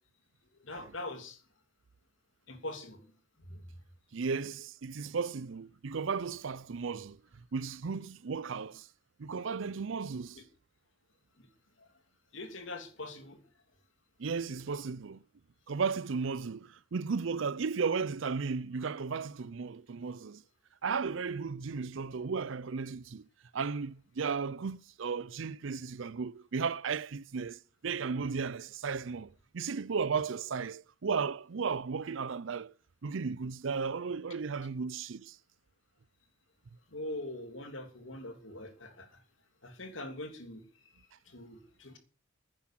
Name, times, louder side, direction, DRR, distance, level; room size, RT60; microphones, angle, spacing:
voice 1, 0.5-1.4 2.5-3.1 3.4-3.6 10.3-10.4 11.4-11.5 11.8-11.9 12.3-13.4 21.1-21.2 36.9-39.2 39.6-42.0, left 2 dB, 70° left, 3.1 m, -43 dB
voice 2, 4.1-7.2 7.5-8.9 9.2-10.4 14.2-15.2 15.7-20.4 20.8-23.2 23.5-32.7 33.0-35.4, right 5 dB, 70° right, 0.5 m, -35 dB
10.0 x 10.0 x 7.5 m
head